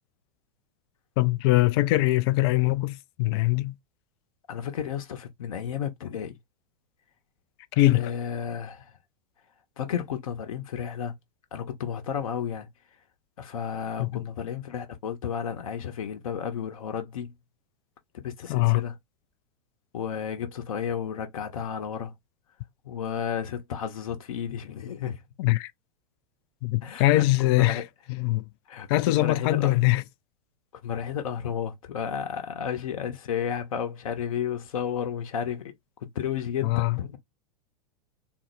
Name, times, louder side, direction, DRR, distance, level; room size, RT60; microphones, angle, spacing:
voice 1, 1.2-3.7 7.8-8.0 14.0-14.2 18.5-18.8 25.4-25.7 26.6-27.8 28.1-28.4 28.9-30.0 36.6-37.0, left 18 dB, 40° left, 0.4 m, -22 dB
voice 2, 4.5-6.4 7.9-9.0 9.8-11.2 11.5-12.7 13.4-17.3 18.1-19.0 19.9-22.1 22.8-25.2 26.8-27.8 28.7-29.8 30.8-35.7 36.0-37.2, left 8 dB, 60° left, 0.8 m, -32 dB
3.7 x 2.0 x 3.1 m
figure-of-eight pair, 90°, 20 cm